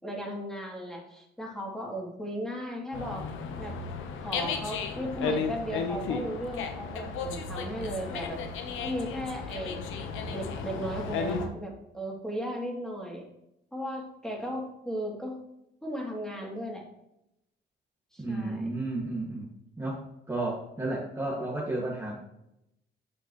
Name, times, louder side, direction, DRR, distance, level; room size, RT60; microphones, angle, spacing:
voice 1, 0.0-3.3 3.6-3.8 4.2-8.4 8.8-9.8 10.3-13.2 13.7-15.4 15.8-16.8 18.1-18.7, equal, 5° left, -2 dB, 2.8 m, -36 dB
Dog, 2.9-11.5, left 5 dB, 90° left, 1.1 m, -34 dB
voice 2, 18.2-19.5 19.8-20.0 20.3-22.1, right 2 dB, 15° right, -5 dB, 2.0 m, -32 dB
9.2 x 6.6 x 3.1 m, 0.82 s
cardioid pair, 90°, 20 cm